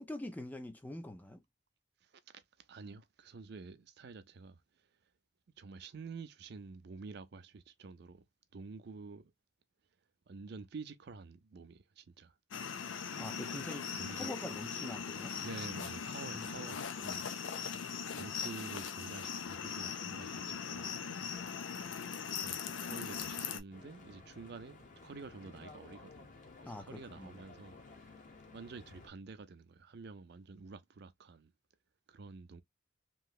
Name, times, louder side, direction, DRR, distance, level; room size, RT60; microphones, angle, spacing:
voice 1, 0.0-1.4 13.2-13.9 14.2-15.3 16.2-16.5 26.7-27.4, left 1 dB, 10° left, 0.3 m, -44 dB
voice 2, 2.0-2.4 2.7-4.6 5.6-8.3 8.5-9.3 10.3-12.3 14.0-14.4 15.4-17.3 18.1-20.9 22.3-26.3 26.6-28.1 28.5-31.5 32.1-32.6, right 4 dB, 55° right, 0.4 m, -49 dB
sound 1, 12.5-23.6, left 6 dB, 75° left, 0.5 m, -40 dB
Stream / Boat Water vehicle, 23.7-29.1, left 3 dB, 40° left, 0.8 m, -55 dB
3.0 x 2.8 x 2.2 m
head